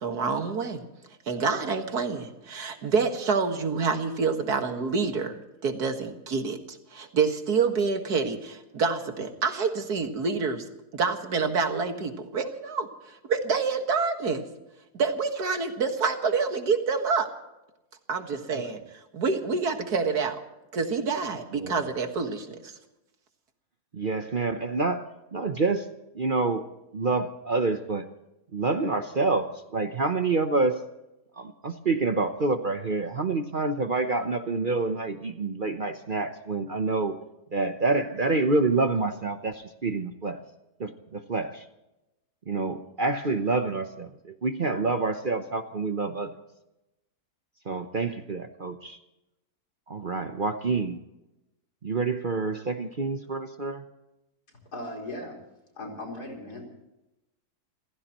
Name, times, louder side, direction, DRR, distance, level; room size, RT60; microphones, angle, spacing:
voice 1, 0.0-0.8 1.3-10.6 10.9-14.4 14.9-17.3 18.1-18.8 19.1-20.4 20.7-22.7, right 4 dB, 80° right, 6 dB, 2.2 m, -27 dB
voice 2, 23.9-25.9 26.1-26.7 26.9-28.1 28.5-30.8 31.3-37.2 37.5-40.4 40.8-41.7 42.5-46.3 47.7-49.0 49.9-51.0 51.8-53.8, right 3 dB, 40° right, 8 dB, 0.8 m, -27 dB
voice 3, 54.7-55.4 55.8-56.8, left 1 dB, 80° left, 0 dB, 4.8 m, -38 dB
28.5 x 15.5 x 3.0 m, 0.93 s
omnidirectional pair, 1.7 m